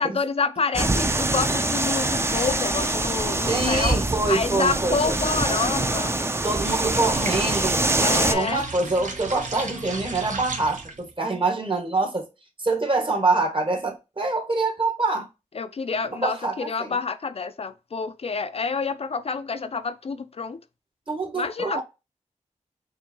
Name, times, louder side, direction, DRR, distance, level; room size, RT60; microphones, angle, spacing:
voice 1, 0.0-4.0 4.3-6.2 8.0-8.6 15.5-20.6 21.3-21.8, left 5 dB, 50° left, 0.4 m, -28 dB
sound 1, 0.7-8.3, right 2 dB, 20° right, 0.5 m, -24 dB
voice 2, 3.5-5.2 6.4-7.9 8.3-12.3 12.6-15.3 16.1-16.9 21.1-21.8, right 3 dB, 40° right, 1.2 m, -25 dB
sound 2, 6.5-11.1, right 3 dB, 75° right, 0.9 m, -35 dB
4.5 x 2.6 x 2.8 m
cardioid pair, 60°, 13 cm